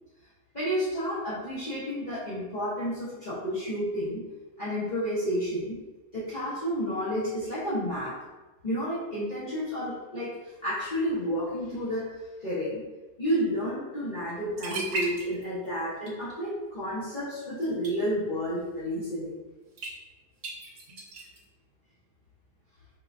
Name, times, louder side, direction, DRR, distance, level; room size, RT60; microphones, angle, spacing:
voice 1, 0.5-4.2 4.6-5.8 6.1-8.2 8.6-12.8 13.2-19.4, equal, 35° left, -10 dB, 0.8 m, -31 dB
sound 1, 14.3-14.4 14.6-15.7 16.0-16.4 17.6-17.9 19.8-19.9 20.4-21.4, right 2 dB, 45° right, 1.2 m, -35 dB
5.3 x 3.8 x 2.6 m, 1.2 s
omnidirectional pair, 2.1 m